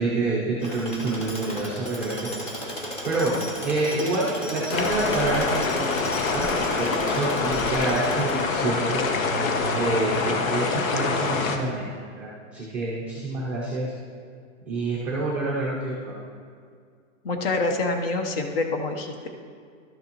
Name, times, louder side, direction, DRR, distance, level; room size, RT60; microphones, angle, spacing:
voice 1, 0.0-2.3 3.0-3.4 3.6-9.0 9.7-11.9 12.1-13.9 14.7-16.1, right 2 dB, 5° right, -9 dB, 0.5 m, -27 dB
Tools, 0.6-8.9, equal, 15° left, 1.0 m, -35 dB
sound 1, 4.7-11.6, left 4 dB, 85° left, 1.0 m, -25 dB
voice 2, 17.2-19.3, left 3 dB, 45° left, 5 dB, 0.9 m, -26 dB
12.0 x 6.7 x 2.9 m, 2.1 s
supercardioid pair, 165°, 39 cm